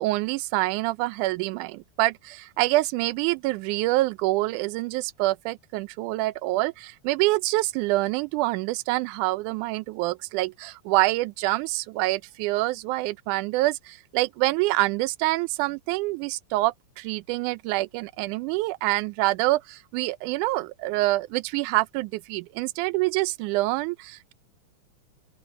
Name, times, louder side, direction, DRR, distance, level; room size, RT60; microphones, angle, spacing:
voice 1, 0.0-24.3, right 19 dB, 85° right, 2.1 m, -26 dB
open air
omnidirectional pair, 3.5 m